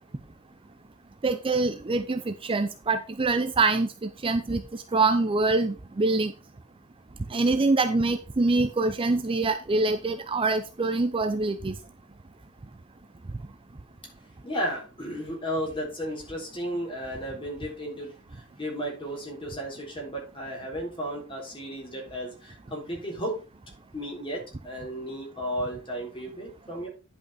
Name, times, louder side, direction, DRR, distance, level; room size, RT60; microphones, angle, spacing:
voice 1, 1.2-6.3 7.3-11.7, right 3 dB, 25° right, 10 dB, 0.5 m, -25 dB
voice 2, 14.4-23.5 23.9-26.9, equal, 25° left, -1 dB, 3.7 m, -34 dB
10.5 x 5.8 x 4.1 m, 0.32 s
head